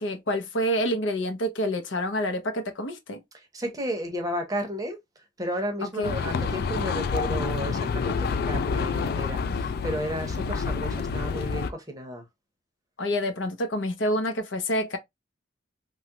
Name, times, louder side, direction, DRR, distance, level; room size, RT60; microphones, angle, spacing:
voice 1, 0.0-3.2 6.0-6.1 13.0-15.0, equal, 70° left, 0.7 m, -27 dB
voice 2, 3.3-12.2, equal, 20° right, 0.7 m, -33 dB
sound 1, 6.0-11.7, left 5 dB, 50° left, 0.3 m, -28 dB
3.0 x 2.3 x 2.8 m
head